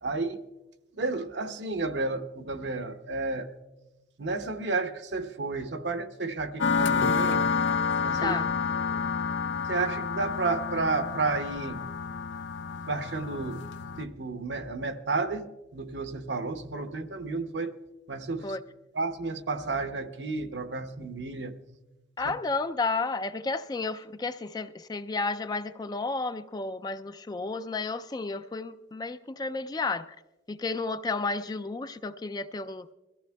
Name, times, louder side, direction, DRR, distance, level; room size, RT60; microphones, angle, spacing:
voice 1, 0.0-0.4 1.0-3.5 4.2-7.5 8.0-8.3 8.8-9.1 9.7-11.8 12.9-13.6 14.0-17.8 18.1-18.6 18.9-21.6, right 3 dB, 70° right, 0.8 m, -32 dB
sound 1, 6.6-14.0, left 5 dB, 80° left, 0.6 m, -29 dB
voice 2, 8.2-8.5 18.4-18.6 22.2-30.2 30.5-32.9, left 3 dB, 20° left, 0.3 m, -32 dB
23.0 x 14.5 x 2.3 m
head